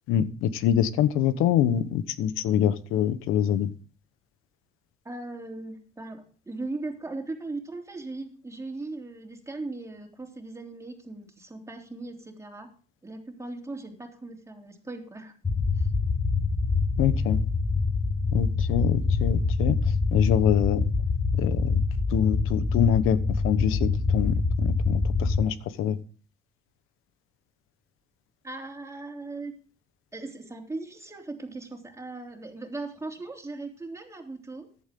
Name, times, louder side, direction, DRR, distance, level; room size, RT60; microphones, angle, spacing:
voice 1, 0.1-3.7 17.0-17.4 18.3-19.8 20.1-20.8 21.4-21.8 22.1-23.2 23.4-26.0, left 9 dB, 85° left, 14 dB, 1.1 m, -25 dB
voice 2, 5.0-12.7 13.0-15.3 15.7-15.9 28.4-29.5 30.1-34.7, right 2 dB, 15° right, 2 dB, 3.4 m, -38 dB
sound 1, 15.4-25.4, left 4 dB, 20° left, 1.2 m, -25 dB
15.0 x 11.0 x 3.8 m, 0.39 s
cardioid pair, 105°, 21 cm